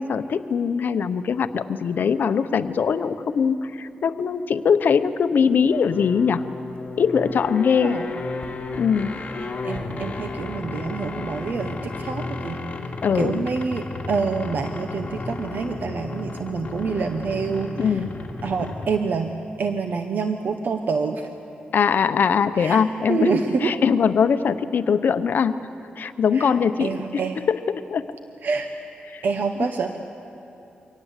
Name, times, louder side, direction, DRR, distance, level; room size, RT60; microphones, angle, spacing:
voice 1, 0.0-6.5 7.0-8.0 8.8-9.2 13.0-13.4 17.8-18.2 21.7-25.6 26.0-28.1 29.1-29.2, left 6 dB, 65° left, 11 dB, 0.8 m, -22 dB
sound 1, 5.7-19.1, left 3 dB, 40° left, 2.3 m, -33 dB
voice 2, 9.6-12.6 13.1-18.0 18.4-19.3 19.6-21.3 22.5-22.8 23.1-23.7 26.3-27.4 28.4-28.7 29.2-30.0, right 5 dB, 65° right, 6 dB, 1.0 m, -27 dB
24.5 x 18.0 x 8.2 m, 3.0 s
cardioid pair, 95°, 3 cm